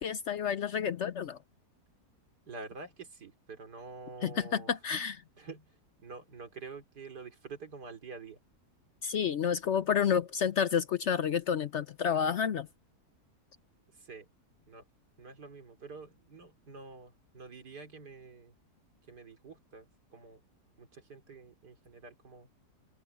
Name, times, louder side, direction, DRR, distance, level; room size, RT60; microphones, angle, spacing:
voice 1, 0.0-1.4 4.2-5.2 9.0-12.7, left 7 dB, 60° left, 0.8 m, -30 dB
voice 2, 2.5-4.7 5.4-8.4 13.9-14.3 14.6-14.9 15.2-18.5 19.1-20.4 20.8-22.5, right 4 dB, 90° right, 3.7 m, -48 dB
open air
omnidirectional pair, 1.7 m